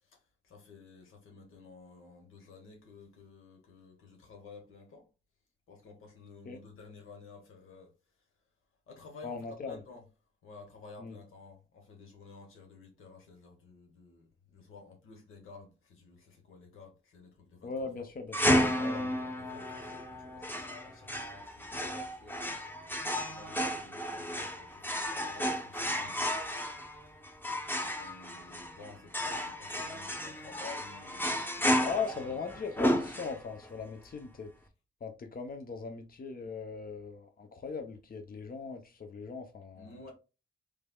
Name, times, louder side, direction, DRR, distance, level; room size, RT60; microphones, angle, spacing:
voice 1, 0.0-5.1 5.7-7.9 8.9-10.0 10.4-18.0 19.0-22.7 23.2-26.4 27.7-32.4 39.7-40.1, left 4 dB, 90° left, 1.1 m, -53 dB
voice 2, 9.2-9.8 11.0-11.2 17.6-18.5 18.8-19.2 31.8-34.5 35.0-40.1, left 5 dB, 45° left, 0.7 m, -39 dB
sound 1, 18.3-33.7, equal, 10° left, 0.9 m, -33 dB
3.3 x 3.2 x 2.2 m
supercardioid pair, 45°, 21 cm